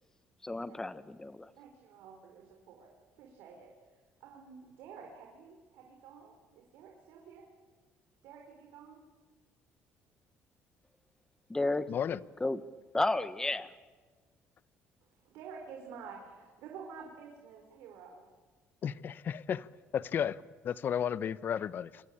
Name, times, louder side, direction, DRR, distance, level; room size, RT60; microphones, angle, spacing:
voice 1, 0.4-1.5 11.5-11.9 12.4-12.6 12.9-13.7, left 2 dB, 10° left, 1.3 m, -32 dB
voice 2, 1.6-2.9 3.2-7.5 8.2-9.0 15.2-18.2, right 6 dB, 90° right, 4.4 m, -50 dB
voice 3, 11.9-12.2 18.8-19.7 19.9-20.4 20.6-22.0, left 8 dB, 50° left, 0.9 m, -33 dB
29.0 x 23.5 x 8.7 m
cardioid pair, 115°, 4 cm